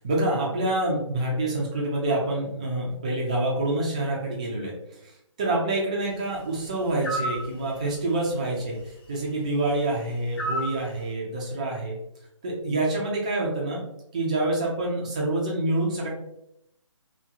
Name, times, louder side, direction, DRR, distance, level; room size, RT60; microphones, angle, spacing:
voice 1, 0.0-12.0 12.4-13.8 14.1-16.1, right 2 dB, 15° right, -3 dB, 0.3 m, -27 dB
sound 1, 7.0-7.4 10.4-10.8, equal, 45° left, 0.7 m, -28 dB
2.7 x 2.7 x 2.3 m, 0.79 s
figure-of-eight pair, 150°, 17 cm